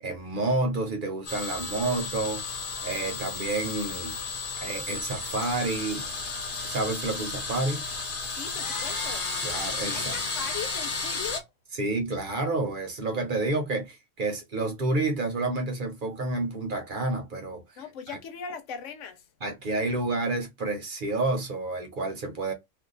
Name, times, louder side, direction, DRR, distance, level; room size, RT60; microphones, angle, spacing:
voice 1, 0.0-2.5 2.8-4.2 4.6-6.1 6.6-7.8 9.4-10.2 11.8-17.6 18.1-18.2 19.4-22.5, right 2 dB, 50° right, 0.8 m, -29 dB
sound 1, 1.3-11.4, left 4 dB, 50° left, 1.0 m, -33 dB
voice 2, 8.4-9.2 9.9-11.5 17.8-19.3, left 7 dB, 85° left, 1.0 m, -39 dB
2.6 x 2.2 x 3.8 m
omnidirectional pair, 1.2 m